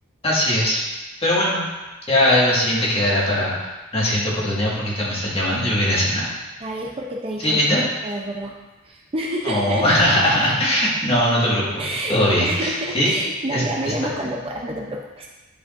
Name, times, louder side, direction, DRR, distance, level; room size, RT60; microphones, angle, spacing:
voice 1, 0.2-0.8 1.2-1.6 2.1-3.5 3.9-6.3 7.4-7.8 9.4-11.8 12.1-13.1 13.5-13.6, left 1 dB, 30° left, -6 dB, 1.7 m, -20 dB
voice 2, 6.6-7.6 8.0-8.5 8.8-10.5 11.8-15.3, right 1 dB, 25° right, -1 dB, 0.5 m, -28 dB
10.0 x 5.0 x 2.5 m, 1.2 s
head